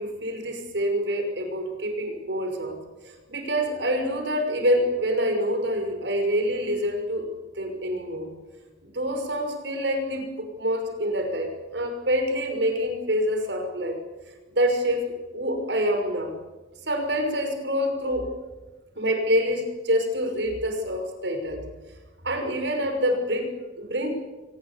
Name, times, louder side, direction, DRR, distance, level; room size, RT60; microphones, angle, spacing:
voice 1, 0.0-2.8 3.0-7.3 7.6-8.3 8.8-14.0 14.5-16.4 16.9-18.3 19.0-21.7 22.2-24.1, equal, 75° right, 5 dB, 5.9 m, -26 dB
24.0 x 19.5 x 8.5 m, 1.2 s
head